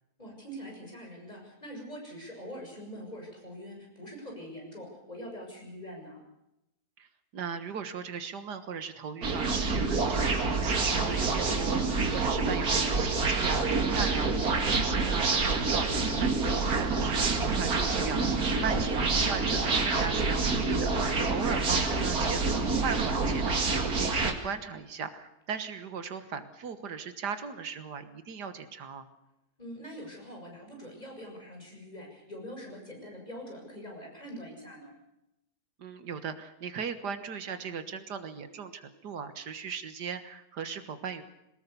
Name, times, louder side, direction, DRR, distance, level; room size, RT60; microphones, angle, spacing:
voice 1, 0.2-6.2 18.5-18.9 21.2-21.5 29.6-34.9, equal, 25° left, 0 dB, 7.4 m, -44 dB
voice 2, 7.3-14.3 14.7-29.1 35.8-41.2, right 6 dB, 85° right, 10 dB, 2.0 m, -38 dB
sound 1, 9.2-24.3, right 3 dB, 65° right, 2.8 m, -27 dB
23.0 x 19.5 x 7.0 m, 0.87 s
omnidirectional pair, 1.7 m